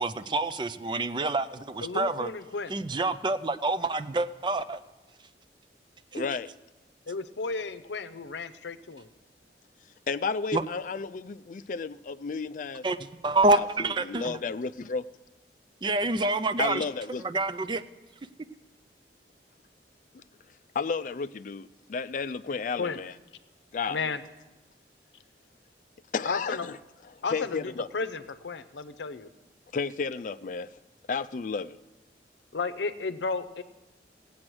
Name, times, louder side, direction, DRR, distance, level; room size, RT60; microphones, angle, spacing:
voice 1, 0.0-2.3 2.7-4.8 6.1-6.3 10.5-10.6 12.8-13.0 13.2-14.4 15.8-16.8 17.2-17.8, right 2 dB, 25° right, 0.4 m, -27 dB
voice 2, 1.8-2.7 7.1-9.1 22.8-23.0 23.9-24.2 26.2-26.7 27.2-29.3 32.5-33.6, left 4 dB, 85° left, 0.7 m, -33 dB
voice 3, 6.1-6.5 10.1-12.8 13.5-15.1 16.6-17.3 20.1-20.2 20.7-23.1 23.7-24.2 26.1-26.8 27.1-27.9 29.7-30.7 31.1-31.8, left 5 dB, 45° left, 0.4 m, -32 dB
16.5 x 8.6 x 6.2 m
head